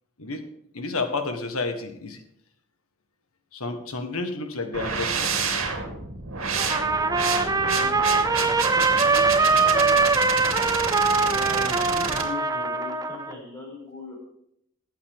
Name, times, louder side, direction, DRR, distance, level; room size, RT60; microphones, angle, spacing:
voice 1, 0.7-2.2 3.5-5.3, left 3 dB, 80° left, 7 dB, 1.6 m, -30 dB
sound 1, 4.7-12.2, right 5 dB, 65° right, 2.5 m, -29 dB
Trumpet, 6.6-13.3, right 4 dB, 15° right, 0.5 m, -22 dB
voice 2, 6.9-9.9 11.3-14.1, left 1 dB, 15° left, -6 dB, 5.8 m, -40 dB
19.5 x 8.4 x 3.7 m, 0.75 s
head